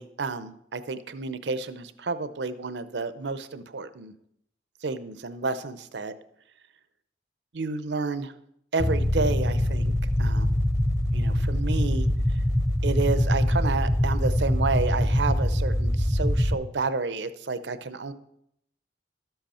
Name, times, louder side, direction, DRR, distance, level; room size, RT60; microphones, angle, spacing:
voice 1, 0.0-4.1 4.8-6.1 7.5-8.3 8.7-9.9 10.2-10.6 11.1-12.1 12.8-18.1, right 4 dB, 75° right, 12 dB, 0.7 m, -30 dB
sound 1, 8.8-16.5, left 1 dB, 15° left, 0.7 m, -23 dB
12.0 x 7.9 x 4.3 m, 0.74 s
head